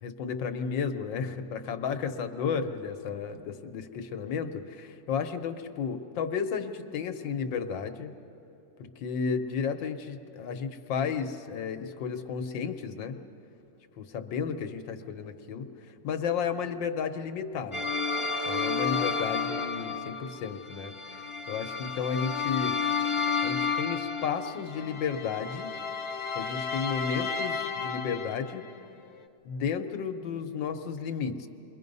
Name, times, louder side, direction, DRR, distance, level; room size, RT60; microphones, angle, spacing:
voice 1, 0.0-8.1 8.8-13.2 14.0-17.9 18.5-21.2 21.5-22.8 23.4-25.7 26.3-28.6 29.4-31.5, left 6 dB, 80° left, 7 dB, 1.7 m, -33 dB
sound 1, 17.7-28.7, left 5 dB, 40° left, 0.4 m, -32 dB
29.0 x 22.5 x 5.4 m, 2.9 s
omnidirectional pair, 2.0 m